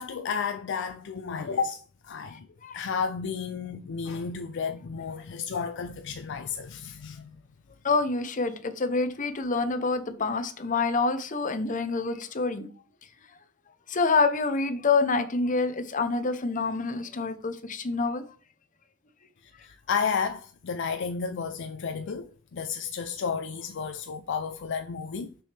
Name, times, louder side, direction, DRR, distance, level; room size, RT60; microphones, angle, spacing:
voice 1, 0.0-1.8 2.1-2.5 2.7-7.3 19.6-25.3, left 6 dB, 60° left, 0.4 m, -32 dB
voice 2, 2.3-2.8 7.8-12.7 13.9-18.3, left 4 dB, 40° left, 0.8 m, -27 dB
6.2 x 6.1 x 3.3 m
head